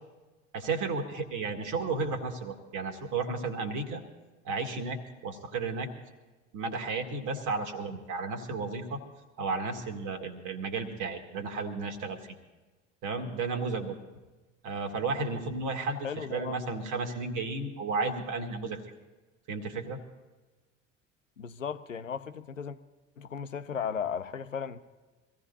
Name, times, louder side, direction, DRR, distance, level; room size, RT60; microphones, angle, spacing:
voice 1, 0.5-4.0 4.4-5.9 6.5-9.0 9.4-12.4 13.0-14.0 14.6-18.8 19.5-20.0, right 4 dB, 55° right, 5 dB, 2.0 m, -33 dB
voice 2, 16.0-16.5 21.4-22.8 23.2-24.8, left 7 dB, 90° left, 11 dB, 0.6 m, -35 dB
24.0 x 16.0 x 2.7 m, 1.2 s
figure-of-eight pair, 60°, 38 cm